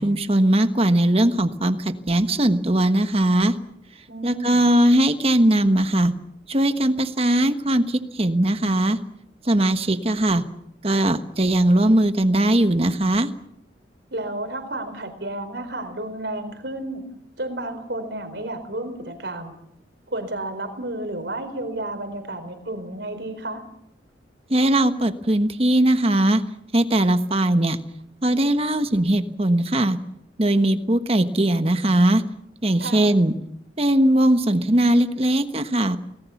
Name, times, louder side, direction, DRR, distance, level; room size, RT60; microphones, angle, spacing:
voice 1, 0.0-3.6 4.2-6.1 6.5-9.0 9.4-10.4 10.8-13.3 24.5-26.4 26.7-27.8 28.2-30.0 30.4-32.2 32.6-33.3 33.8-36.0, right 1 dB, 30° right, 9 dB, 1.3 m, -19 dB
voice 2, 4.1-4.7 14.1-17.0 17.4-19.6 20.1-23.6 32.8-33.1, right 1 dB, 65° right, 6 dB, 4.4 m, -31 dB
28.5 x 19.5 x 7.2 m, 0.78 s
head